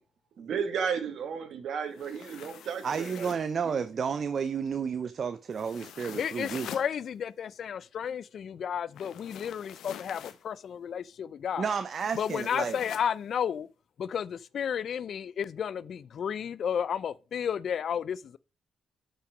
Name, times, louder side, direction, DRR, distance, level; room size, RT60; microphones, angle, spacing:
voice 1, 0.4-3.3 3.6-3.8, right 6 dB, 65° right, 1.8 m, -33 dB
sound 1, 1.9-3.5 5.5-6.9 8.9-10.4 11.9-13.1, left 10 dB, 75° left, 0.8 m, -45 dB
voice 2, 2.8-6.8 11.6-12.8, right 6 dB, 50° right, 0.6 m, -31 dB
voice 3, 6.2-11.7 12.2-13.7 14.0-18.4, left 8 dB, 60° left, 0.4 m, -32 dB
8.6 x 5.7 x 5.0 m
cardioid pair, 90°, 0 cm